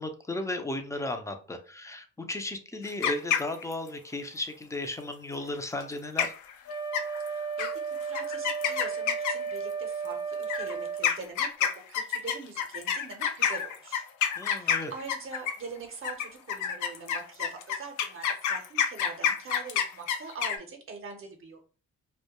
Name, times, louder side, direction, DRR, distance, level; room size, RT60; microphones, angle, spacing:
voice 1, 0.0-6.3 14.4-14.9, left 2 dB, 10° left, 6 dB, 0.4 m, -35 dB
sound 1, 2.8-3.9 5.8-5.9 6.2-6.5 6.9-7.3 7.6-7.7 8.1-9.6 10.4-15.7 16.0-20.6, left 8 dB, 75° left, 0.5 m, -28 dB
Wind instrument woodwind instrument, 6.7-11.1, right 6 dB, 50° left, 0.8 m, -34 dB
voice 2, 7.2-14.0 14.5-21.6, right 4 dB, 45° right, 4 dB, 0.6 m, -43 dB
2.1 x 2.1 x 2.9 m, 0.39 s
cardioid pair, 90°, 30 cm